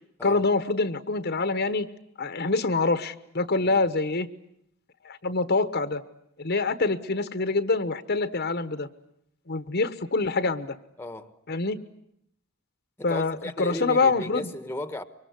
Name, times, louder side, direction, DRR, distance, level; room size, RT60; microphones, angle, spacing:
voice 1, 0.2-1.9 2.2-4.3 5.0-6.0 6.4-8.9 9.5-10.7 11.5-11.8 13.0-14.5, left 3 dB, 55° left, 1.2 m, -25 dB
voice 2, 11.0-11.4 13.0-15.0, left 1 dB, 10° left, 1.2 m, -35 dB
25.0 x 24.0 x 9.6 m
head